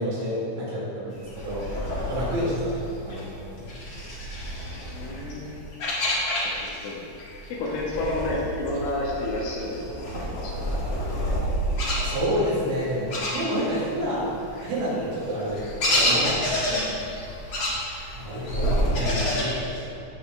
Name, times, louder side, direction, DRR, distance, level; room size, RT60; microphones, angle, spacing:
voice 1, 0.0-1.7 2.1-3.3 3.9-4.0 12.0-14.3 14.6-16.9 18.1-20.0, equal, 80° right, -8 dB, 5.0 m, -29 dB
sound 1, 1.2-6.9 7.2-13.9 14.3-19.4, equal, 60° left, 1.3 m, -29 dB
voice 2, 4.7-5.5 6.8-7.0 7.5-9.9 10.4-10.5, left 2 dB, 90° left, -4 dB, 4.0 m, -30 dB
16.0 x 5.8 x 3.3 m, 2.6 s
omnidirectional pair, 5.4 m